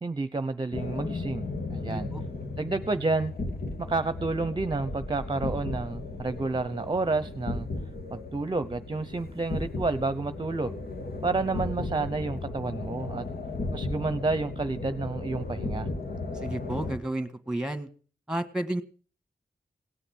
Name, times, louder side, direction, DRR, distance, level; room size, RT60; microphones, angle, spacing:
voice 1, 0.0-2.1 2.6-3.3 3.9-7.7 8.1-10.8 11.2-13.2 13.7-15.9, right 3 dB, 30° right, 12 dB, 0.8 m, -30 dB
sound 1, 0.7-17.0, left 2 dB, 75° left, 2.5 m, -35 dB
voice 2, 1.8-2.2 16.3-17.9 18.3-18.8, right 1 dB, 5° right, 10 dB, 1.8 m, -32 dB
18.0 x 9.8 x 6.3 m, 0.40 s
wide cardioid pair, 120°, 16 cm